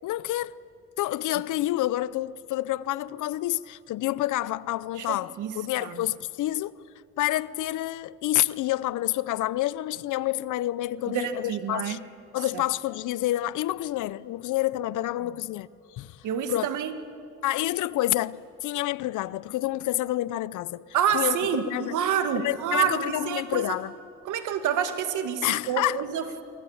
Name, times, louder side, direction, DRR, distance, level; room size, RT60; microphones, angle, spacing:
voice 1, 0.0-0.6 1.0-6.7 7.2-12.0 12.3-16.7 17.4-20.8 21.1-22.0 22.4-23.9 25.4-26.0, left 15 dB, 80° left, 0.7 m, -28 dB
voice 2, 5.0-5.5 5.8-6.0 11.1-12.0 12.5-12.6 16.2-16.9 20.9-23.8 24.3-26.4, right 8 dB, 80° right, 1.8 m, -28 dB
25.5 x 24.0 x 7.2 m
cardioid pair, 90°, 30 cm